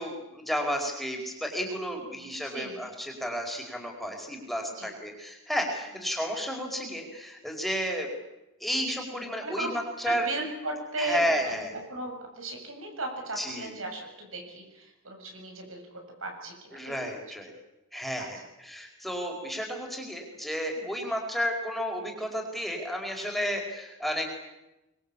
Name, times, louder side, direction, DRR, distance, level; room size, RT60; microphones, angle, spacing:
voice 1, 0.0-8.1 8.6-10.3 11.0-11.7 13.4-13.7 16.7-17.5 17.9-24.3, equal, ahead, 1 dB, 4.8 m, -32 dB
voice 2, 2.1-2.9 4.8-4.9 9.4-9.7 10.0-11.6 11.9-15.8 16.2-16.5 16.9-17.0 18.2-18.3 20.7-20.9, right 2 dB, 75° right, 3 dB, 7.4 m, -36 dB
24.5 x 23.0 x 8.5 m, 0.95 s
head